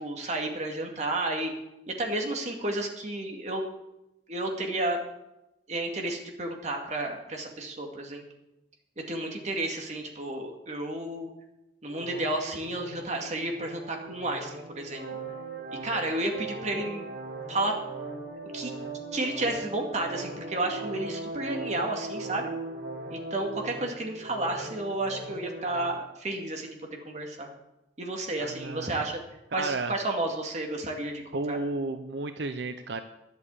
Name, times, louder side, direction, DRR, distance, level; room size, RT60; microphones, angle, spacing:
voice 1, 0.0-1.5 2.0-3.6 4.3-5.0 5.7-8.2 9.1-11.3 11.8-15.0 15.8-17.1 17.5-17.7 18.5-18.7 19.1-22.5 23.1-27.5 28.0-29.2 29.5-31.6, right 2 dB, 40° right, 2 dB, 2.2 m, -32 dB
sound 1, 11.9-25.9, right 2 dB, 60° right, 2.0 m, -39 dB
voice 2, 28.4-29.0 29.5-29.9 31.3-33.0, right 3 dB, 80° right, 9 dB, 0.7 m, -32 dB
11.0 x 8.3 x 8.3 m, 0.92 s
head